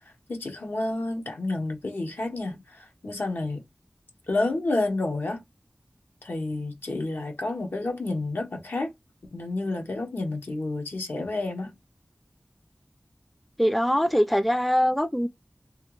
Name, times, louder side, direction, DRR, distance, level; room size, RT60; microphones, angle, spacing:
voice 1, 0.3-3.6 4.3-5.4 6.2-8.9 9.3-11.7, left 2 dB, 85° left, 1.1 m, -30 dB
voice 2, 13.6-15.3, equal, ahead, 0.4 m, -22 dB
3.3 x 2.5 x 3.1 m
wide cardioid pair, 60°, 3 cm